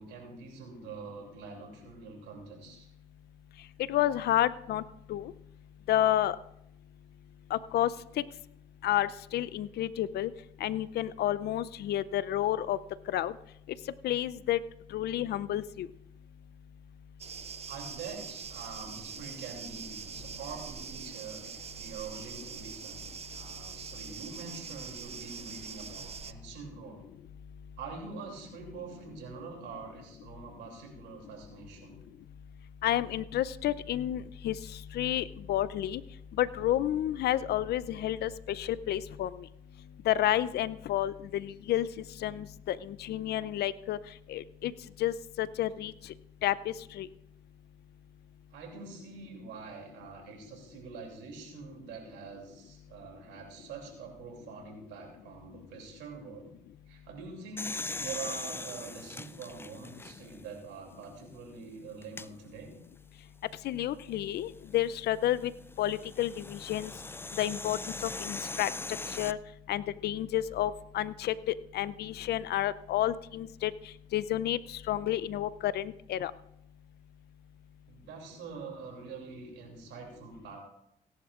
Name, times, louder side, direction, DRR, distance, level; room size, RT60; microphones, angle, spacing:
voice 1, 0.0-2.9 17.7-27.1 27.8-32.0 48.5-56.5 56.9-62.7 77.9-80.6, right 5 dB, 80° right, 2 dB, 2.9 m, -45 dB
voice 2, 3.9-4.8 5.1-5.3 5.9-6.4 7.5-7.9 8.2-8.3 8.8-10.3 10.6-12.8 13.1-13.3 14.0-14.6 14.9-15.9 32.8-34.6 34.9-36.0 36.4-39.5 40.1-41.9 42.2-44.0 44.3-44.7 45.0-45.9 46.4-47.1 63.6-65.5 65.8-66.9 67.4-68.7 69.2-69.4 69.7-73.7 74.1-76.3, left 12 dB, 65° left, 17 dB, 0.5 m, -30 dB
sound 1, 17.2-26.3, right 6 dB, 35° right, 0.6 m, -43 dB
sound 2, 57.6-60.5 61.0-61.1 62.0-62.3 64.4-69.3, left 3 dB, 15° left, 0.4 m, -40 dB
17.5 x 11.0 x 2.5 m, 0.80 s
supercardioid pair, 55°, 18 cm